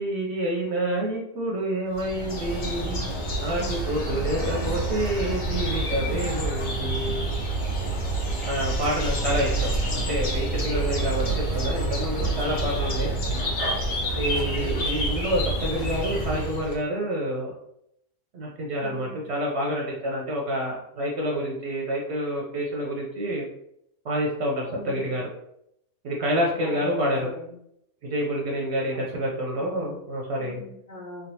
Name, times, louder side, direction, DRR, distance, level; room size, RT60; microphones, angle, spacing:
voice 1, 0.0-3.0 3.4-7.4 8.4-13.1 14.1-17.5 18.3-23.5 24.0-25.2 26.0-27.3 28.0-30.6, equal, 65° right, -2 dB, 0.8 m, -28 dB
sound 1, 1.9-16.8, right 2 dB, 80° left, 1.3 m, -28 dB
voice 2, 8.4-8.8 12.8-13.5 14.3-14.8 18.8-19.3 24.6-25.1 26.6-27.6 28.9-29.2 29.5-30.0 30.3-31.3, left 1 dB, 30° left, -8 dB, 1.2 m, -44 dB
sound 2, 9.0-14.5, equal, 30° right, 0.3 m, -41 dB
3.1 x 2.2 x 2.7 m, 0.75 s
omnidirectional pair, 1.4 m